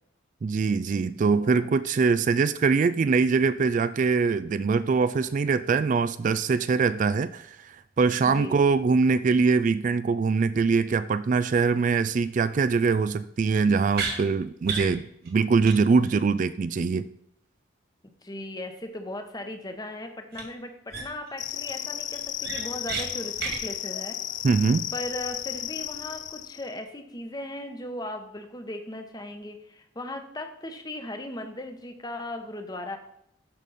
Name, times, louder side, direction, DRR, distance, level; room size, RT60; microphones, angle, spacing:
voice 1, 0.4-17.1 24.4-24.9, right 4 dB, 40° right, 13 dB, 0.3 m, -23 dB
voice 2, 1.3-1.7 2.3-2.4 8.3-8.6 18.2-24.2 24.9-33.0, left 1 dB, 20° left, 6 dB, 1.0 m, -37 dB
sound 1, 13.9-14.2 14.6-14.9 15.3-15.4 15.6-15.8 16.0-16.2 20.3-20.4 20.9-21.3 21.7-21.8 22.1-23.0 23.4-23.6, right 5 dB, 55° right, 2.0 m, -31 dB
sound 2, 21.4-26.7, left 12 dB, 40° left, 0.4 m, -34 dB
12.5 x 5.3 x 4.1 m, 0.79 s
head